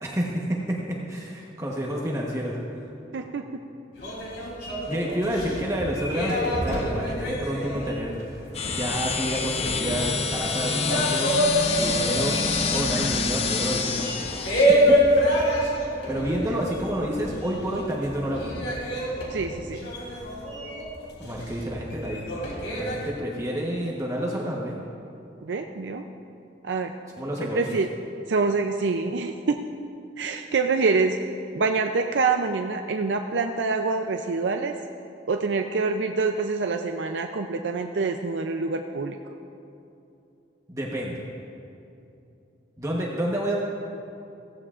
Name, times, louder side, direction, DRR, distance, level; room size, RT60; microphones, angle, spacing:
voice 1, 0.0-2.5 4.8-8.4 8.7-11.3 11.8-12.4 12.7-15.3 16.1-18.7 21.2-22.3 22.7-24.8 27.2-27.6 40.7-41.2 42.8-43.6, equal, 15° right, -3 dB, 1.1 m, -29 dB
voice 2, 3.1-3.4 19.3-19.9 25.4-26.0 26.6-26.9 27.5-27.9 28.3-29.6 30.2-31.2 31.5-34.7 35.3-39.2, right 4 dB, 85° right, 4 dB, 0.5 m, -26 dB
sound 1, 4.0-17.7 18.0-23.1, equal, 85° left, 3.1 m, -27 dB
sound 2, 8.5-14.7, left 5 dB, 35° left, 0.6 m, -27 dB
16.0 x 15.5 x 2.5 m, 2.7 s
head